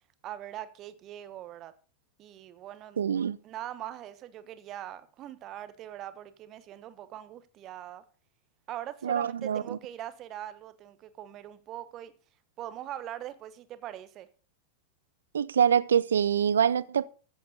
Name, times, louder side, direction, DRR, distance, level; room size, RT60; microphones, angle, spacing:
voice 1, 0.2-1.7 2.2-3.0 3.4-8.0 8.7-12.1 12.6-14.3, right 12 dB, 35° right, 1.2 m, -42 dB
voice 2, 3.0-3.4 9.0-9.6 15.3-17.1, right 8 dB, 65° right, 0.5 m, -25 dB
15.0 x 8.0 x 5.3 m
figure-of-eight pair, 90°, 0 cm